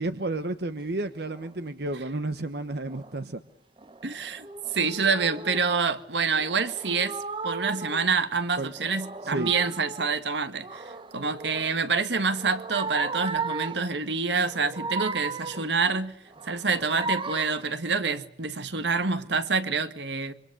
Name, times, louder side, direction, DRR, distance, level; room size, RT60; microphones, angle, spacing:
voice 1, 0.0-3.4 8.6-8.7 9.2-9.5, right 2 dB, 65° right, 1.2 m, -31 dB
sound 1, 1.3-1.6 2.9-3.2 3.8-5.7 6.3-8.2 8.6-10.1 10.6-11.8 12.2-13.9 14.4-15.8 16.3-17.7, right 4 dB, 30° right, 1.1 m, -36 dB
voice 2, 4.0-4.5 4.7-7.2 7.4-16.1 16.5-20.3, right 4 dB, 80° right, 1.7 m, -27 dB
26.5 x 24.5 x 6.7 m
head